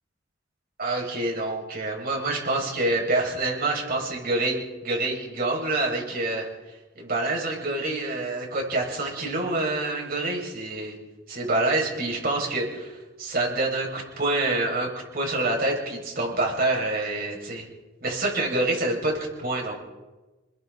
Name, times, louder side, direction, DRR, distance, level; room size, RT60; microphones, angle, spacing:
voice 1, 0.8-6.5 6.9-11.0 11.3-17.7 18.0-19.7, right 2 dB, 50° right, -1 dB, 6.7 m, -27 dB
28.0 x 22.0 x 4.2 m, 1.1 s
head